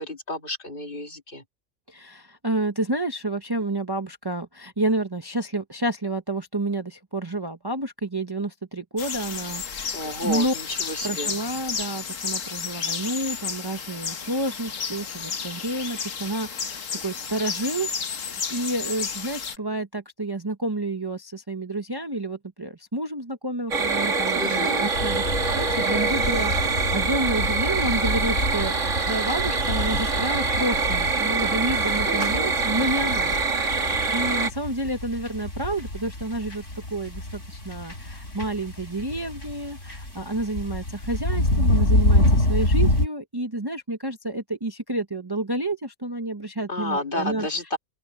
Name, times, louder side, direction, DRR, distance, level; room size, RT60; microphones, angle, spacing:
voice 1, 0.0-1.4 9.9-11.3 24.4-24.9 32.1-32.5 46.7-47.8, left 1 dB, 45° left, 2.5 m, -31 dB
voice 2, 1.9-10.5 11.0-17.9 18.3-28.7 29.0-36.6 36.9-47.5, right 2 dB, 20° right, 1.0 m, -30 dB
sound 1, 9.0-19.6, left 6 dB, 85° left, 1.7 m, -32 dB
sound 2, 23.7-34.5, right 4 dB, 75° right, 2.3 m, -25 dB
sound 3, 24.9-43.1, left 1 dB, 70° left, 8.1 m, -27 dB
open air
omnidirectional pair, 1.3 m